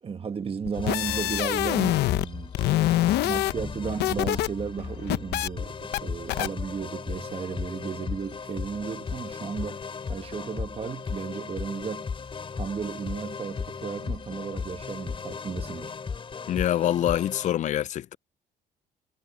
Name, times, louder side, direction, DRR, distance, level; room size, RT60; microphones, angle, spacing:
voice 1, 0.0-2.5 3.2-12.1 12.5-15.9, right 6 dB, 35° right, 1.5 m, -34 dB
sound 1, 0.7-2.3 2.5-4.5 4.8-5.5 5.9-6.0 6.3-6.5, left 15 dB, 80° left, 0.9 m, -25 dB
sound 2, 0.7-17.5, left 5 dB, 30° left, 4.2 m, -36 dB
voice 2, 16.5-18.2, left 11 dB, 45° left, 0.4 m, -25 dB
cardioid pair, 110°, 17 cm